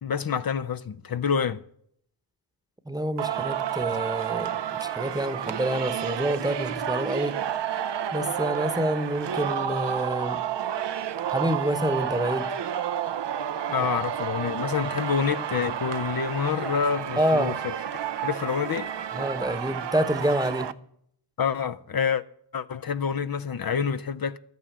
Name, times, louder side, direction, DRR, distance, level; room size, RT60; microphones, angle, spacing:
voice 1, 0.0-1.6 13.7-17.5 18.2-18.9 21.4-22.2 22.5-24.4, left 6 dB, 55° left, 0.7 m, -27 dB
voice 2, 2.9-7.4 8.1-10.4 11.3-12.5 13.8-13.9 17.2-17.6 19.1-20.7, right 1 dB, 10° right, 1.0 m, -27 dB
Singing, 3.2-20.7, right 9 dB, 80° right, 0.7 m, -30 dB
12.5 x 9.3 x 8.1 m
cardioid pair, 65°, 42 cm